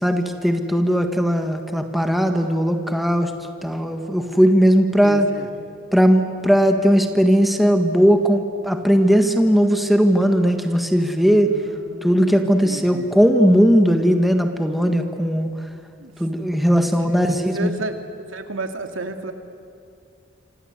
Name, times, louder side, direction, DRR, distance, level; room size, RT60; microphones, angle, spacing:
voice 1, 0.0-3.3 3.6-5.3 5.9-11.5 12.0-15.5 16.2-17.7, equal, ahead, 5 dB, 1.6 m, -18 dB
voice 2, 5.0-5.5 11.2-13.1 16.0-16.5 17.1-18.0 18.3-19.3, right 2 dB, 90° right, 5 dB, 2.3 m, -33 dB
27.0 x 26.5 x 8.2 m, 2.4 s
head